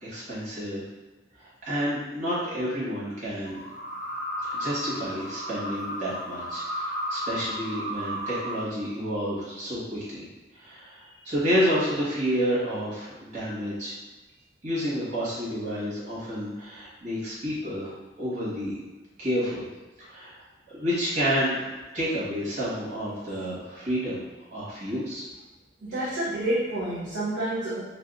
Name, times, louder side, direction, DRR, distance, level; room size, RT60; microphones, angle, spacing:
voice 1, 0.0-0.8 1.4-3.6 4.5-10.3 10.5-13.9 14.6-18.8 19.2-19.7 20.1-20.3 20.7-24.2 24.5-25.3, equal, 40° right, -9 dB, 1.2 m, -30 dB
sound 1, 3.5-8.6, equal, 40° left, 0.6 m, -34 dB
voice 2, 25.8-27.8, right 1 dB, 65° right, -9 dB, 0.6 m, -28 dB
2.7 x 2.2 x 2.4 m, 1.2 s
head